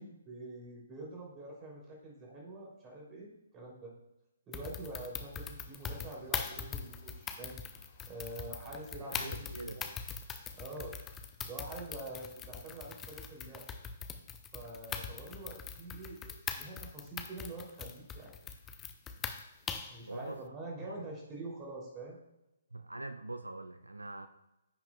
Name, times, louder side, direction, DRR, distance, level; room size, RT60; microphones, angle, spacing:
voice 1, 0.0-3.3 3.5-3.9 4.5-7.6 8.1-9.9 10.5-11.0 11.4-13.6 14.5-18.4 19.9-22.2, right 2 dB, 20° right, -2 dB, 3.1 m, -46 dB
sound 1, 4.5-20.0, left 7 dB, 15° left, 0.6 m, -42 dB
sound 2, 4.9-11.2, left 3 dB, 45° left, 1.6 m, -61 dB
voice 2, 9.0-9.9 20.1-20.4 20.8-21.0 22.7-24.3, right 2 dB, 80° right, 9 dB, 0.5 m, -43 dB
15.0 x 6.0 x 2.3 m, 0.92 s
figure-of-eight pair, 130°, 0 cm